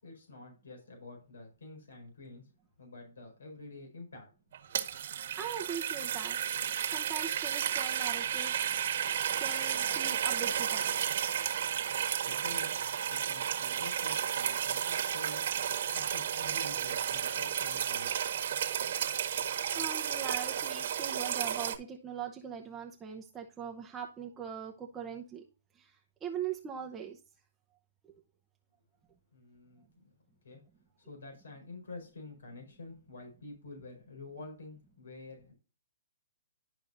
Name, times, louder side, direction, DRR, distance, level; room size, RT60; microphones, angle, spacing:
voice 1, 0.0-2.5 2.8-4.3 4.6-4.8 12.2-15.4 15.9-18.3 29.3-30.1 30.4-30.6 31.0-35.5, left 3 dB, 90° left, 1 dB, 4.8 m, -48 dB
sound 1, 4.5-21.8, right 9 dB, 60° right, 1.6 m, -32 dB
voice 2, 5.4-6.6 6.9-11.2 19.7-25.4 25.8-27.2, right 7 dB, 15° right, 0 dB, 0.8 m, -41 dB
11.5 x 5.4 x 2.6 m, 0.34 s
hypercardioid pair, 150°, 0 cm